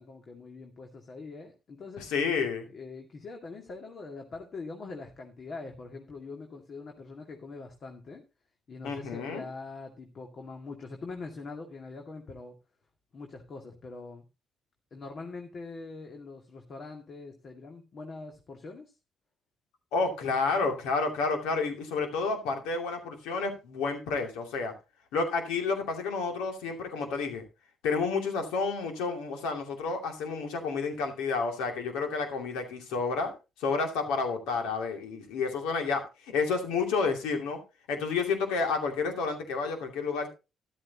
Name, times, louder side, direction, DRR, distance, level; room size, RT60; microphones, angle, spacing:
voice 1, 0.0-2.1 2.7-8.2 8.7-12.5 13.1-14.2 14.9-18.9, left 3 dB, 50° left, 3 dB, 2.2 m, -43 dB
voice 2, 2.0-2.7 8.8-9.4 19.9-24.7 25.1-27.4 27.8-33.3 33.6-37.6 37.9-40.3, left 4 dB, 75° left, 4 dB, 2.6 m, -30 dB
13.0 x 12.0 x 2.9 m, 0.28 s
hypercardioid pair, 45°, 0 cm